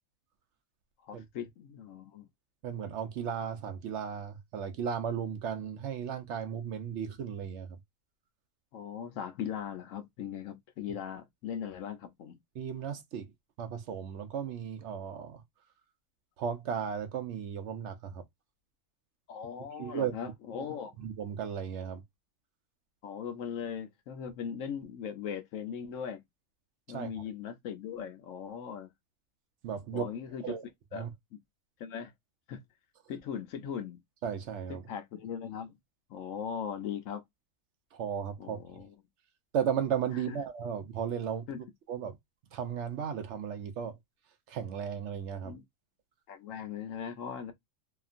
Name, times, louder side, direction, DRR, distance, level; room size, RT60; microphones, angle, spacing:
voice 1, 1.0-2.3 8.7-12.4 19.3-20.9 23.0-26.2 26.9-28.9 29.9-30.5 30.9-31.1 31.8-32.1 32.5-32.6 33.1-34.0 34.9-35.8 36.1-37.2 38.4-38.9 40.3-40.4 41.5-41.6 45.4-45.6 46.3-47.5, left 8 dB, 70° left, 1.0 m, -39 dB
voice 2, 2.6-7.8 12.6-13.3 13.6-15.4 16.4-18.2 19.8-20.2 20.6-20.7 21.0-22.0 26.9-27.2 29.6-30.1 30.4-30.6 30.9-31.1 34.2-34.8 37.9-38.6 39.5-41.5 41.9-42.2 42.5-44.0 44.5-45.6, right 8 dB, 65° right, 0.8 m, -35 dB
2.8 x 2.4 x 2.4 m
omnidirectional pair, 1.4 m